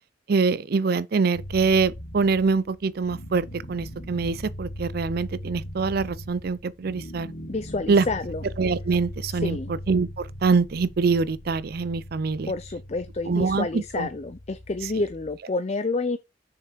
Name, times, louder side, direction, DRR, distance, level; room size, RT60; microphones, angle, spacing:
voice 1, 0.3-7.3 7.9-8.0 8.6-9.6 9.9-12.5 13.3-14.1, right 4 dB, 55° right, 0.4 m, -24 dB
sound 1, 1.3-15.4, equal, 80° left, 2.2 m, -40 dB
voice 2, 7.5-8.4 9.3-9.7 12.5-16.2, left 3 dB, 35° left, 0.5 m, -29 dB
6.8 x 5.7 x 4.5 m
head